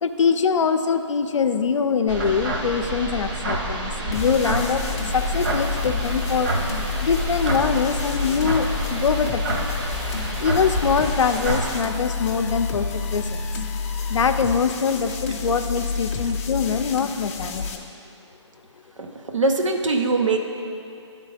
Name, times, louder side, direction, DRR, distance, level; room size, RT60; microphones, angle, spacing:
voice 1, 0.0-6.5 7.0-9.6 10.4-13.4 14.1-17.8, left 6 dB, 75° left, 8 dB, 0.5 m, -23 dB
sound 1, 2.1-11.8, right 2 dB, 45° right, 1.1 m, -28 dB
sound 2, 4.1-17.8, left 4 dB, 30° left, 0.6 m, -29 dB
voice 2, 19.0-20.4, right 3 dB, 85° right, 3 dB, 0.9 m, -23 dB
10.5 x 3.8 x 4.9 m, 2.7 s
hypercardioid pair, 155°, 16 cm